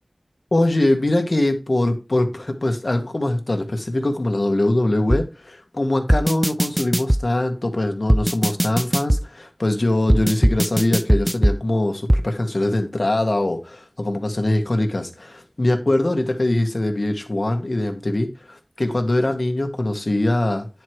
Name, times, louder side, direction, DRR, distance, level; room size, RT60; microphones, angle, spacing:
voice 1, 0.5-20.7, left 1 dB, 65° left, 1.8 m, -22 dB
sound 1, 5.1-5.2 6.1-7.2 8.1-9.2 10.1-11.6 12.1-12.2, equal, 15° right, 0.4 m, -18 dB
10.0 x 4.8 x 4.8 m
wide cardioid pair, 45°, 0 cm